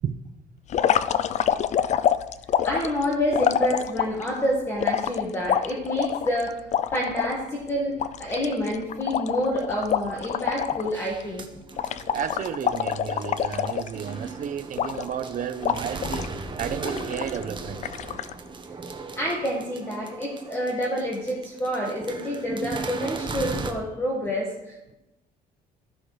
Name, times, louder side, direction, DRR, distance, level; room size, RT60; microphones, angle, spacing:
sound 1, 0.7-4.3 4.8-7.3 7.7-7.8 8.0-10.9 11.2-11.4 11.8-14.3 14.8-15.3 15.6-16.3 16.8-17.4 17.8-18.3, left 9 dB, 45° left, 0.4 m, -26 dB
voice 1, 2.6-6.6 6.9-11.5 19.1-24.9, equal, 15° left, -3 dB, 1.7 m, -28 dB
sound 2, 10.9-23.7, right 3 dB, 30° right, 1.1 m, -37 dB
voice 2, 12.1-17.8, right 8 dB, 50° right, 11 dB, 0.7 m, -32 dB
15.5 x 5.9 x 3.3 m, 0.95 s
cardioid pair, 110°, 17 cm